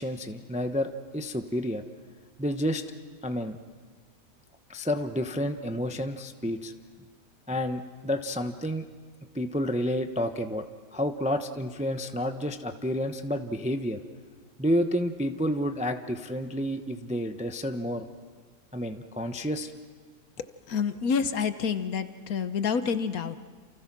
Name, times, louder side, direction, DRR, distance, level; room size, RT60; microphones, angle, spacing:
voice 1, 0.0-1.8 2.4-2.8 3.2-3.6 4.7-6.7 7.5-8.9 9.3-10.7 10.9-14.0 14.6-18.0 18.7-19.7, equal, 5° right, 7 dB, 0.6 m, -30 dB
voice 2, 20.7-23.4, left 6 dB, 60° left, 11 dB, 1.3 m, -28 dB
28.5 x 28.5 x 6.1 m, 1.5 s
omnidirectional pair, 1.8 m